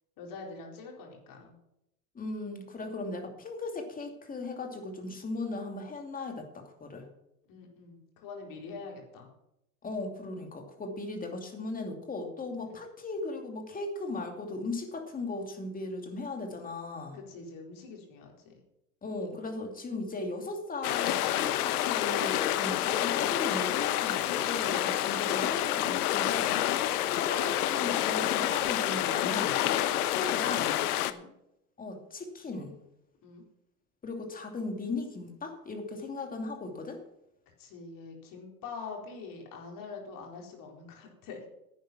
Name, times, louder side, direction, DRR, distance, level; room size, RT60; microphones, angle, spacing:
voice 1, 0.2-1.5 7.5-9.3 12.6-12.8 17.1-18.6 31.0-31.3 33.2-33.4 37.6-41.5, left 4 dB, 45° left, 0 dB, 4.4 m, -45 dB
voice 2, 2.1-7.1 9.8-17.2 19.0-26.6 27.2-29.5 29.9-30.8 31.8-32.8 34.0-37.0, left 2 dB, 20° left, 4 dB, 2.5 m, -37 dB
sound 1, 20.8-31.1, left 13 dB, 70° left, 1.0 m, -28 dB
11.0 x 9.2 x 6.1 m, 0.83 s
hypercardioid pair, 115°, 47 cm